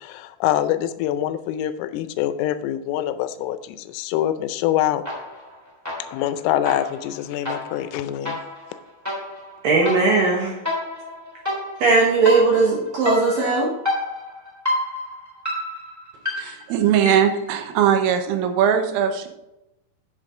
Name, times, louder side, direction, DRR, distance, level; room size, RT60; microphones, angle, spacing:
voice 1, 0.0-5.0 6.1-8.4, left 12 dB, 85° left, 11 dB, 3.2 m, -25 dB
sound 1, 5.0-5.5 5.8-17.5, left 1 dB, 5° right, 1.9 m, -30 dB
voice 2, 9.6-10.5 11.8-13.7, right 3 dB, 70° right, -1 dB, 2.2 m, -18 dB
voice 3, 16.4-19.3, right 8 dB, 90° right, 7 dB, 3.6 m, -20 dB
8.4 x 7.9 x 3.7 m, 0.89 s
omnidirectional pair, 5.8 m